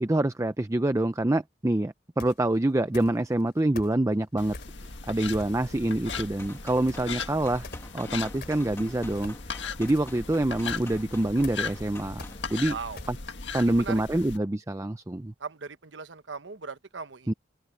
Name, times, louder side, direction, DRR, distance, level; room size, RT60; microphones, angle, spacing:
voice 1, 0.0-4.6 5.1-7.7 7.9-12.2 12.5-12.8 13.1-13.2 13.5-15.3 17.3-17.4, right 1 dB, 15° right, 0.5 m, -26 dB
sound 1, 2.2-2.5 2.9-3.4 3.8-4.8 5.3-5.8 6.1-6.6 6.9-13.5, left 2 dB, 55° left, 3.7 m, -44 dB
sound 2, 4.4-14.4, left 5 dB, 75° left, 1.7 m, -38 dB
sound 3, 6.0-12.6, left 1 dB, 15° left, 1.8 m, -48 dB
voice 2, 12.7-13.0 13.6-14.2 15.4-17.3, right 5 dB, 75° right, 1.0 m, -39 dB
head